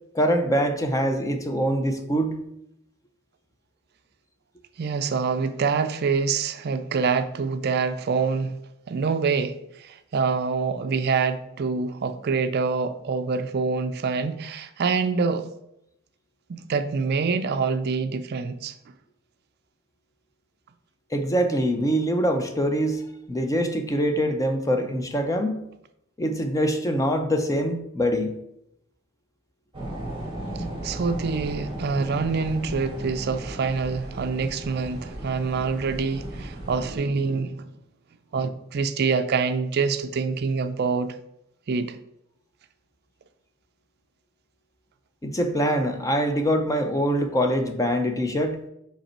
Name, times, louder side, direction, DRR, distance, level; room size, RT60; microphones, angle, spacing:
voice 1, 0.1-2.4 21.1-25.6 26.2-28.4 45.2-48.6, equal, 15° left, 0.5 m, -24 dB
voice 2, 4.8-8.5 8.9-15.5 16.5-18.7 30.8-37.7 38.3-41.1 41.7-42.0, right 5 dB, 50° right, 0.4 m, -26 dB
sound 1, 29.7-37.0, right 1 dB, 25° right, 1.9 m, -35 dB
5.3 x 5.1 x 4.3 m
head